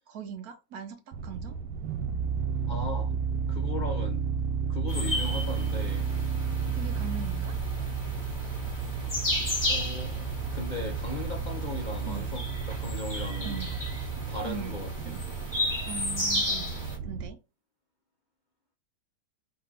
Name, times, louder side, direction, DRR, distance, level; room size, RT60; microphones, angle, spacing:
voice 1, 0.1-1.6 6.7-7.6 12.0-12.3 13.4-13.8 14.4-14.9 15.9-17.4, right 7 dB, 65° right, 1.2 m, -40 dB
sound 1, 1.1-17.3, right 6 dB, 80° right, 1.4 m, -32 dB
voice 2, 2.7-3.1 3.5-4.3 4.7-6.1 9.7-13.6 14.3-15.1, left 3 dB, 80° left, 0.4 m, -38 dB
sound 2, 4.9-16.9, left 1 dB, 10° left, 2.5 m, -34 dB
4.4 x 3.7 x 3.3 m
omnidirectional pair, 1.9 m